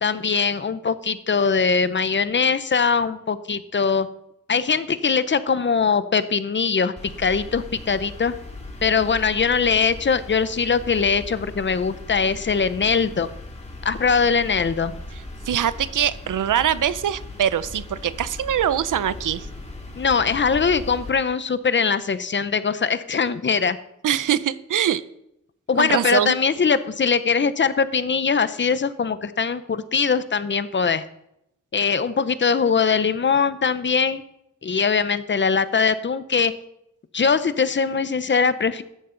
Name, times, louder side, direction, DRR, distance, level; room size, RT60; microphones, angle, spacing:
voice 1, 0.0-4.1 4.5-8.4 8.8-13.3 13.8-14.9 20.0-23.8 25.7-31.0 31.7-34.2 34.6-36.5 37.1-38.8, left 5 dB, 40° left, 14 dB, 0.7 m, -21 dB
sound 1, 7.0-21.1, left 2 dB, 20° left, 2.4 m, -38 dB
voice 2, 15.5-19.5 24.0-25.0 25.8-26.3, right 9 dB, 90° right, 16 dB, 0.7 m, -23 dB
14.0 x 11.5 x 3.9 m, 0.81 s
wide cardioid pair, 125°, 30 cm